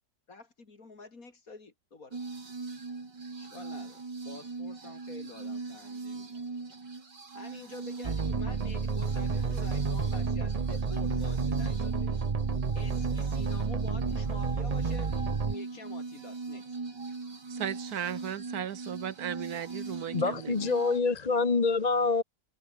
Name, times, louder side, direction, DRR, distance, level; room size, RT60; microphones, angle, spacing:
voice 1, 0.3-2.2 3.4-6.5 7.4-12.2 12.7-15.1 15.4-16.8, left 3 dB, 55° left, 3.7 m, -47 dB
sound 1, 2.1-21.0, right 4 dB, 90° right, 4.5 m, -40 dB
sound 2, 8.0-15.5, right 5 dB, 30° right, 0.7 m, -30 dB
voice 2, 17.5-20.7, right 9 dB, 65° right, 1.3 m, -36 dB
voice 3, 20.1-22.2, left 4 dB, 30° left, 1.0 m, -26 dB
omnidirectional pair, 1.8 m